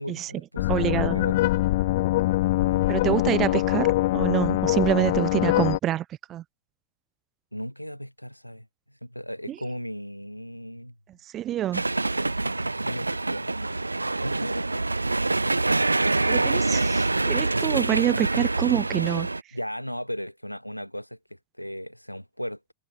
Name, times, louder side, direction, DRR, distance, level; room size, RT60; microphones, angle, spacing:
voice 1, 0.0-1.5 2.7-2.8 5.6-5.7 7.5-11.0 12.1-13.9 14.2-14.8 19.0-19.2 19.5-22.7, equal, 90° left, 2.4 m, -37 dB
sound 1, 0.6-5.8, left 17 dB, 55° left, 0.5 m, -23 dB
voice 2, 0.7-1.2 2.9-6.0 6.3-6.4 9.5-9.6 11.3-11.8 16.3-19.3, right 12 dB, 30° right, 1.0 m, -26 dB
sound 2, 11.7-19.4, right 2 dB, 80° right, 1.5 m, -25 dB
figure-of-eight pair, 90°, 0 cm